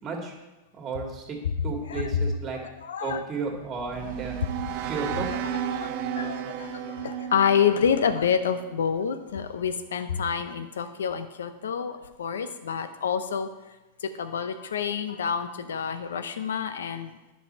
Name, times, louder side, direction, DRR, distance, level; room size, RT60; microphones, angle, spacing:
voice 1, 0.0-0.3 0.7-1.4 1.6-2.6 3.0-4.4 4.9-5.3, right 4 dB, 30° right, 1 dB, 2.2 m, -33 dB
voice 2, 2.8-3.2 5.3-5.4 5.7-13.5 14.0-17.2, left 7 dB, 80° left, 10 dB, 0.7 m, -28 dB
sound 1, 3.5-8.7, right 9 dB, 55° right, 0.7 m, -33 dB
10.0 x 5.7 x 4.3 m, 1.1 s
hypercardioid pair, 100°, 0 cm